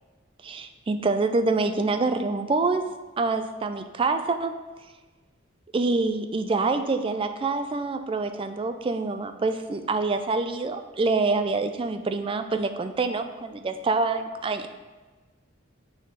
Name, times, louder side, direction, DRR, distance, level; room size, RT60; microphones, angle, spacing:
voice 1, 0.4-2.9 3.2-4.5 5.7-14.7, right 3 dB, 25° right, 8 dB, 0.3 m, -26 dB
6.3 x 4.1 x 4.6 m, 1.3 s
head